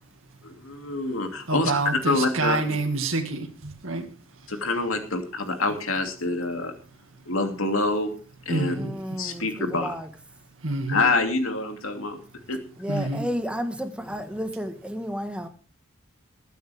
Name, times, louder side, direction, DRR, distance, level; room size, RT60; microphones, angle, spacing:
voice 1, 0.4-1.7 2.0-2.6 4.5-6.7 7.3-8.1 8.5-10.0 10.9-12.2 12.5-12.6, left 2 dB, 80° left, 2.7 m, -26 dB
voice 2, 1.5-4.1 8.5-8.9 10.6-11.0 12.9-13.2, right 3 dB, 70° right, 2.1 m, -27 dB
voice 3, 8.7-10.1 12.8-15.5, equal, 5° right, 1.4 m, -32 dB
21.0 x 9.3 x 3.5 m
head